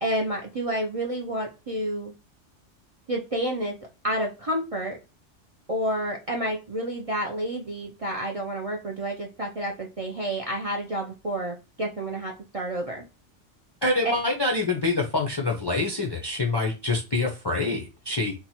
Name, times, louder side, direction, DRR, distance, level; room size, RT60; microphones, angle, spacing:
voice 1, 0.0-2.1 3.1-3.7 4.0-5.0 5.7-13.0, right 1 dB, 45° right, 1 dB, 0.4 m, -29 dB
voice 2, 13.8-18.3, left 2 dB, 35° left, 0 dB, 0.4 m, -26 dB
2.9 x 2.2 x 4.1 m, 0.28 s
omnidirectional pair, 1.2 m